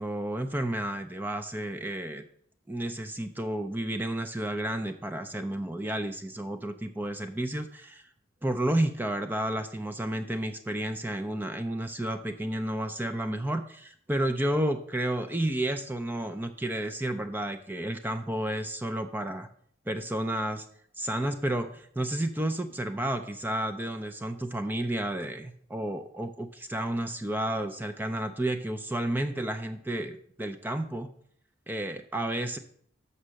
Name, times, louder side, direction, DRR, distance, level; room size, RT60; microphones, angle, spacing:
voice 1, 0.0-2.3 2.7-8.1 8.4-19.5 19.9-20.7 21.0-31.1 31.7-32.6, right 1 dB, 10° right, 7 dB, 0.4 m, -31 dB
7.1 x 5.6 x 6.3 m, 0.63 s
head